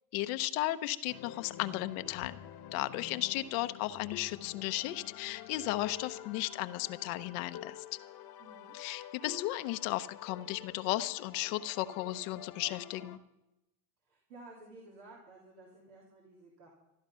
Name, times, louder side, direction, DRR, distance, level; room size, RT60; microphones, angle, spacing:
voice 1, 0.1-2.4 2.7-8.0 8.7-13.2, left 16 dB, 80° left, 11 dB, 0.9 m, -35 dB
sound 1, 1.1-13.2, left 11 dB, 55° left, 1.2 m, -48 dB
voice 2, 8.4-8.8 14.0-16.7, right 2 dB, 85° right, -3 dB, 3.3 m, -54 dB
14.5 x 12.5 x 5.6 m, 0.94 s
supercardioid pair, 80°, 43 cm